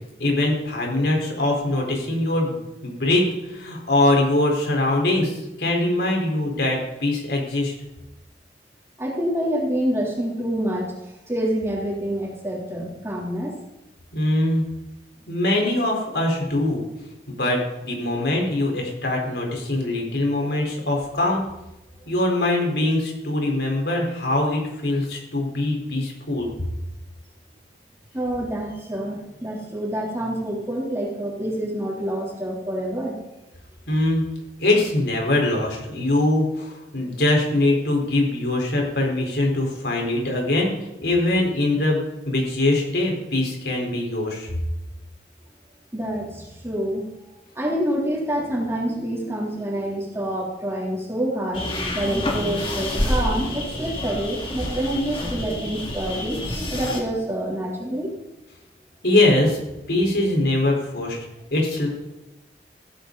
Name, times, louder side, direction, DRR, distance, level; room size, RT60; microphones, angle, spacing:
voice 1, 0.2-7.7 14.1-14.6 15.3-16.8 17.3-21.4 22.1-26.5 33.9-34.2 34.6-40.7 41.0-44.5 59.0-59.6 59.9-61.2 61.5-61.9, left 1 dB, 70° left, 0 dB, 4.4 m, -22 dB
voice 2, 9.0-10.9 11.3-13.6 28.1-33.2 45.9-47.1 47.6-51.7 51.9-56.4 56.7-58.1, right 1 dB, 15° right, -4 dB, 3.4 m, -27 dB
sound 1, 51.5-57.0, left 1 dB, 30° left, 2.3 m, -28 dB
16.0 x 14.5 x 4.1 m, 0.96 s
head